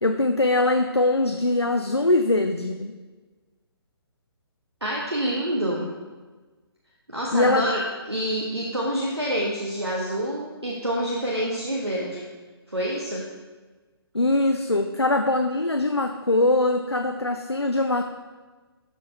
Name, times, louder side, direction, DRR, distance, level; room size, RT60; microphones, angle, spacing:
voice 1, 0.0-2.9 7.3-7.6 14.1-18.0, left 2 dB, 90° left, 6 dB, 0.6 m, -22 dB
voice 2, 4.8-5.9 7.1-7.8 8.1-12.3 12.7-13.3, equal, 85° right, -2 dB, 1.4 m, -27 dB
12.5 x 4.7 x 4.4 m, 1.3 s
figure-of-eight pair, 135°, 13 cm